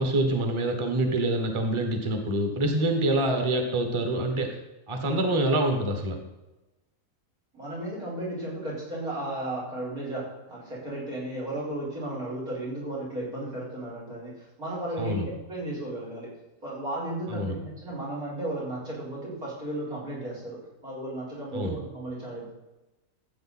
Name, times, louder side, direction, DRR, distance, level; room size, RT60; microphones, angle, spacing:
voice 1, 0.0-4.6 4.9-6.2 15.0-15.3 17.3-17.6 21.5-21.8, right 1 dB, 20° right, 4 dB, 1.1 m, -26 dB
voice 2, 7.5-16.3 16.6-22.5, right 1 dB, 80° right, -4 dB, 5.1 m, -34 dB
13.5 x 7.9 x 4.3 m, 1.0 s
omnidirectional pair, 1.5 m